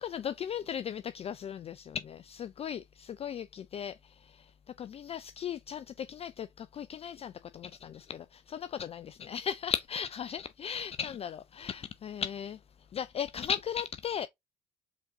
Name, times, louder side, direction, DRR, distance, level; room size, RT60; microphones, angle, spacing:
voice 1, 0.0-4.5 4.8-12.6 12.9-14.3, left 8 dB, 35° left, 0.4 m, -37 dB
5.1 x 3.7 x 2.7 m
hypercardioid pair, 55°, 17 cm